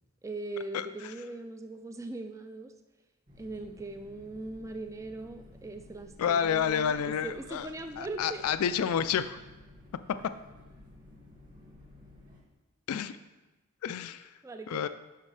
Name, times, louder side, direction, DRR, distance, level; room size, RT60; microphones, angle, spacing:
voice 1, 0.2-2.7 3.4-8.4 14.4-14.9, right 2 dB, 15° right, 6 dB, 0.3 m, -40 dB
sound 1, 3.3-12.4, left 2 dB, 40° right, 2.0 m, -54 dB
voice 2, 6.2-7.7 8.0-9.4 12.9-13.2 13.8-14.3 14.7-14.9, left 8 dB, 90° left, 12 dB, 0.4 m, -29 dB
11.5 x 5.4 x 3.3 m, 1.1 s
head